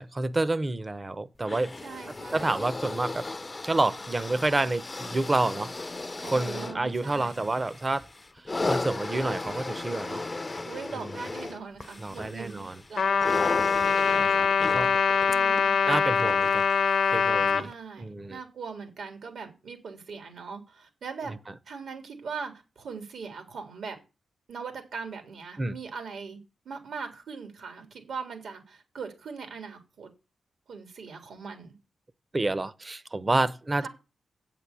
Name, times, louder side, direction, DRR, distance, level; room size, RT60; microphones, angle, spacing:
voice 1, 0.0-1.7 2.3-3.3 3.6-5.7 6.3-8.1 8.4-10.2 12.0-12.8 14.1-14.9 15.9-16.7 17.1-17.7 18.0-18.4 21.3-21.4 25.6-25.7 32.3-33.9, right 2 dB, 25° right, 0.8 m, -29 dB
sound 1, 1.4-16.9 17.7-17.8, left 2 dB, 25° left, 0.6 m, -36 dB
voice 2, 1.8-2.6 6.2-7.4 10.6-14.3 15.3-15.8 17.5-21.4 21.7-24.0 24.5-26.4 26.7-30.1 30.7-31.8 33.8-33.9, right 5 dB, 80° right, 3.4 m, -40 dB
Trumpet, 13.0-17.6, left 6 dB, 65° left, 1.0 m, -23 dB
8.2 x 7.7 x 8.3 m
cardioid pair, 90°, 0 cm